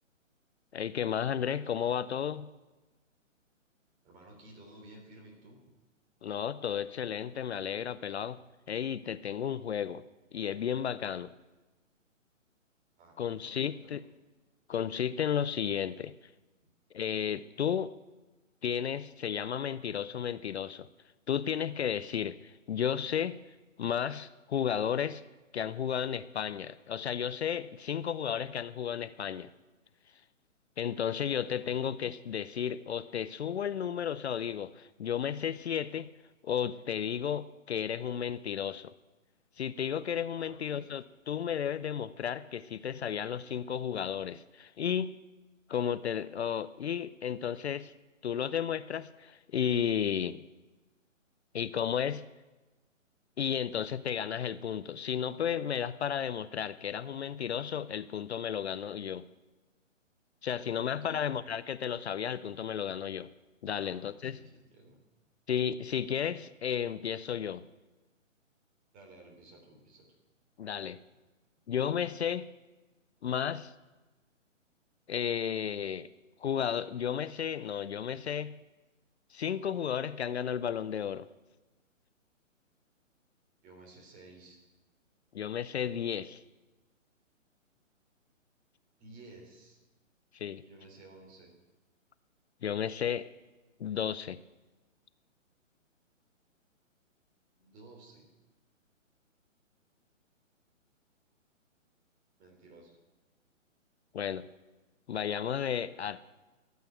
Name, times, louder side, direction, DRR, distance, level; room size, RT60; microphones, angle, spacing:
voice 1, 0.7-2.5 6.2-8.4 8.7-10.0 10.3-11.3 13.2-14.0 14.7-16.1 16.9-17.9 18.6-20.9 21.3-23.4 23.8-25.2 25.5-29.5 30.8-36.1 36.4-38.9 39.6-45.2 45.7-47.9 48.2-50.4 51.5-52.2 53.4-59.3 60.4-63.3 63.6-64.4 65.5-67.6 70.6-71.0 71.7-72.5 73.2-73.7 75.1-76.1 76.4-78.6 79.3-81.3 85.3-86.4 90.3-90.6 92.6-93.3 93.8-94.4 104.1-104.5 105.1-106.2, left 8 dB, 55° left, 16 dB, 0.5 m, -33 dB
voice 2, 4.0-5.6 13.0-14.1 31.6-31.9 40.3-40.9 60.4-61.3 63.7-65.0 68.9-70.1 83.6-84.6 89.0-89.8 90.6-91.5 97.6-98.3 102.4-103.0, right 2 dB, 20° right, 1 dB, 3.3 m, -54 dB
13.0 x 8.1 x 9.2 m, 1.2 s
figure-of-eight pair, 135°, 39 cm